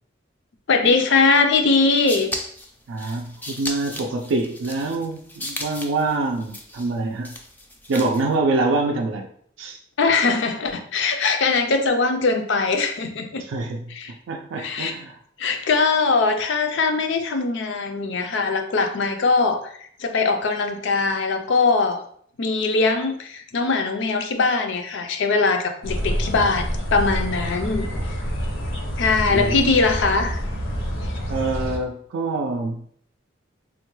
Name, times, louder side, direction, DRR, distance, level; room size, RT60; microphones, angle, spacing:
voice 1, 0.7-2.3 10.0-13.4 13.9-14.1 14.6-15.0 15.4-22.0 22.4-27.9 29.0-30.4, left 4 dB, 65° left, 6 dB, 0.5 m, -21 dB
sound 1, 1.7-8.3, left 1 dB, 10° left, 0.4 m, -35 dB
voice 2, 2.9-7.3 7.9-9.3 9.6-9.8 13.5-13.8 14.3-15.2 27.9-28.1 29.3-29.7 31.3-32.8, right 3 dB, 75° right, 1 dB, 0.4 m, -25 dB
sound 2, 25.8-31.8, equal, 90° left, 0.9 m, -27 dB
3.7 x 2.2 x 3.0 m, 0.62 s
head